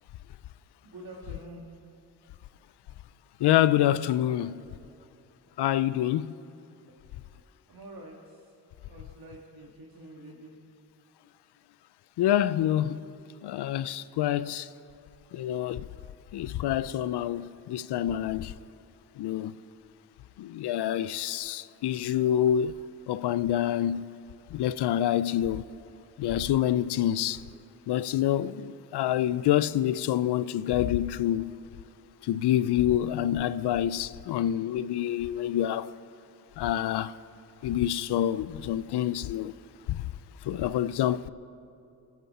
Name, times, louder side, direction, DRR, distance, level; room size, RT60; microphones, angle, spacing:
voice 1, 0.8-1.9 7.7-10.6, right 1 dB, 65° right, 1.8 m, -47 dB
voice 2, 3.4-4.5 5.6-6.3 12.2-13.0 13.4-14.7 15.3-15.9 16.3-18.6 19.2-19.5 20.4-22.7 23.1-24.0 24.5-25.6 26.2-27.4 27.9-31.5 32.2-35.9 36.6-37.1 37.6-39.5 39.9-40.0 40.5-41.3, left 11 dB, 90° left, 0.5 m, -27 dB
24.5 x 9.6 x 4.2 m
cardioid pair, 50°, 39 cm